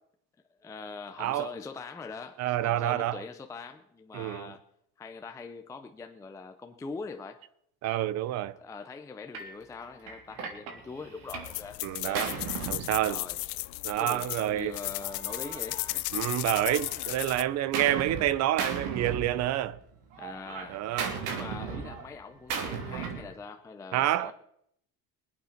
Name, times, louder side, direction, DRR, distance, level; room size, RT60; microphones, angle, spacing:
voice 1, 0.6-4.6 5.0-7.4 8.6-12.3 13.0-13.4 14.0-16.2 20.2-20.8 21.3-24.3, left 4 dB, 10° left, 0.5 m, -43 dB
voice 2, 1.2-1.5 2.4-3.2 4.1-4.5 7.8-8.6 11.8-12.3 12.7-13.2 13.8-14.7 16.1-19.8 20.7-21.1 23.9-24.3, right 13 dB, 40° right, 0.6 m, -28 dB
Gunshot gunfire, 9.3-9.5 10.1-11.6 11.9-13.6 14.5-16.3 16.7-18.3 18.6-19.8 20.1-23.3, right 6 dB, 70° right, 3.2 m, -37 dB
sound 1, 11.3-17.4, left 23 dB, 80° left, 0.7 m, -35 dB
23.0 x 8.5 x 5.8 m
cardioid pair, 175°, 40 cm